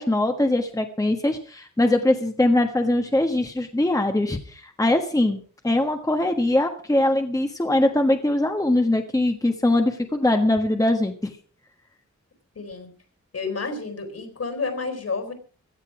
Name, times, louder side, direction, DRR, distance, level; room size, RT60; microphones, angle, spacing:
voice 1, 0.0-11.3, left 1 dB, 10° left, 5 dB, 1.3 m, -22 dB
voice 2, 12.5-12.9 13.3-15.3, left 4 dB, 60° left, 8 dB, 4.3 m, -30 dB
16.5 x 13.0 x 4.9 m, 0.40 s
wide cardioid pair, 155°, 29 cm